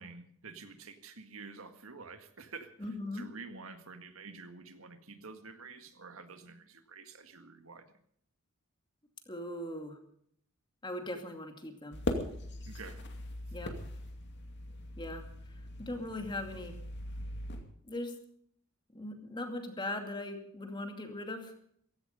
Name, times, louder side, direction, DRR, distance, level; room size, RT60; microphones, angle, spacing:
voice 1, 0.0-7.9 12.6-13.0, right 4 dB, 70° right, 8 dB, 1.8 m, -49 dB
voice 2, 2.8-3.2 9.3-10.0 10.8-12.0 13.5-13.7 15.0-15.2 15.8-16.7 17.8-18.1 18.9-21.5, left 1 dB, 20° left, 5 dB, 2.4 m, -39 dB
sound 1, 11.9-17.6, left 1 dB, 50° left, 2.5 m, -40 dB
16.5 x 16.0 x 5.3 m, 0.65 s
head